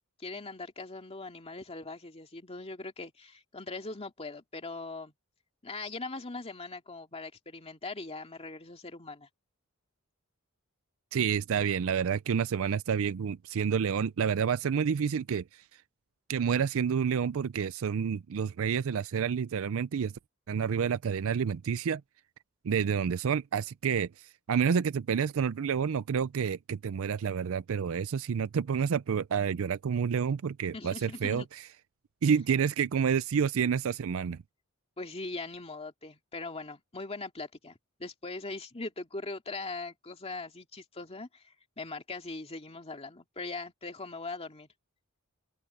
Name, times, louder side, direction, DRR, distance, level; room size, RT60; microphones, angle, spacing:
voice 1, 0.2-5.1 5.6-9.3 30.7-31.5 35.0-44.7, left 3 dB, 30° left, 2.2 m, -41 dB
voice 2, 11.1-15.4 16.3-20.1 20.5-22.0 22.6-24.1 24.5-31.4 32.2-34.4, right 7 dB, 70° right, 0.4 m, -29 dB
head